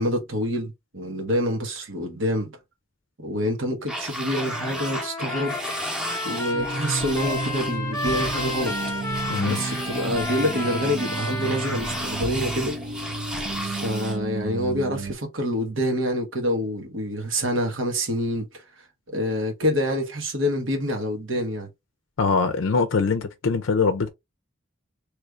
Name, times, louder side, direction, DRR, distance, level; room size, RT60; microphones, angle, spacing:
voice 1, 0.0-2.5 3.2-5.6 6.2-8.7 9.5-12.8 13.6-18.6 19.1-21.7, equal, 70° right, 1.3 m, -26 dB
sound 1, 3.9-14.2, equal, 5° right, 0.9 m, -33 dB
Trumpet, 4.2-12.3, left 2 dB, 15° left, 0.6 m, -33 dB
sound 2, 6.5-15.2, right 3 dB, 40° right, 0.4 m, -32 dB
voice 2, 22.2-24.1, left 4 dB, 70° left, 0.5 m, -22 dB
3.2 x 2.5 x 3.1 m
head